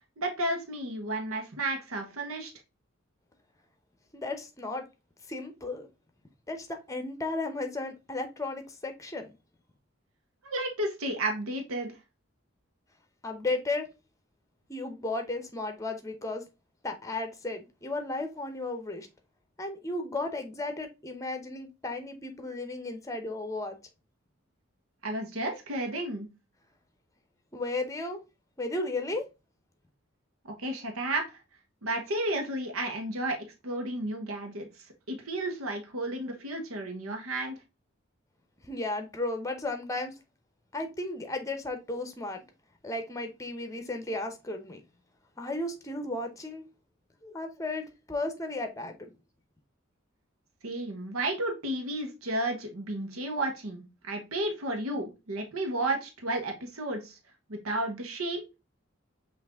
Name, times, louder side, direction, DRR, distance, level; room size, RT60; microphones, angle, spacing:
voice 1, 0.2-2.5 10.4-11.9 25.0-26.3 30.6-31.4 31.8-33.4 33.6-34.7 35.1-37.6 50.6-57.2 57.5-58.4, right 1 dB, 90° right, 1.0 m, -32 dB
voice 2, 4.1-4.8 5.3-5.9 6.5-9.3 13.2-13.9 14.7-16.4 16.8-19.1 19.6-23.8 27.5-28.2 28.6-29.3 38.6-40.1 40.7-42.4 42.8-44.8 45.4-46.6 47.2-49.1, left 2 dB, 15° left, 0.7 m, -34 dB
5.8 x 2.6 x 3.5 m
head